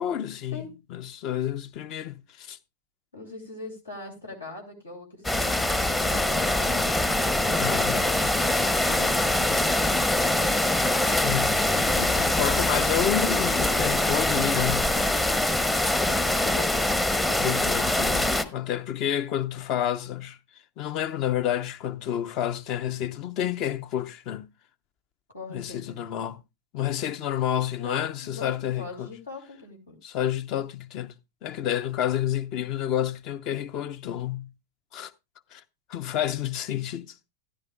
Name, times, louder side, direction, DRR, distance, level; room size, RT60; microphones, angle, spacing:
voice 1, 0.0-2.6 7.6-8.0 11.1-11.6 12.0-14.9 17.4-20.4 20.8-24.5 25.5-26.4 26.7-29.1 30.0-31.1 31.4-34.5 34.9-35.1 35.5-35.6 35.9-37.2, left 11 dB, 40° left, 0.7 m, -29 dB
voice 2, 3.1-6.8 7.3-9.8 16.5-16.7 25.3-26.0 27.8-30.0, left 3 dB, 75° left, 2.6 m, -41 dB
sound 1, 5.2-18.4, left 1 dB, 10° left, 0.8 m, -24 dB
14.0 x 11.0 x 2.3 m
figure-of-eight pair, 90°, 0 cm